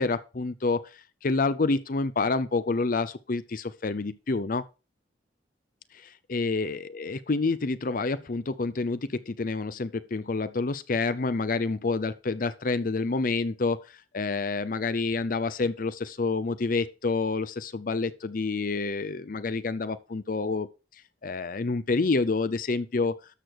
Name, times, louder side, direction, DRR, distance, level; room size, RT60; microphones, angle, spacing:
voice 1, 0.0-4.6 5.9-20.7 21.2-23.1, left 3 dB, 50° left, 0.6 m, -28 dB
12.5 x 6.6 x 4.7 m
head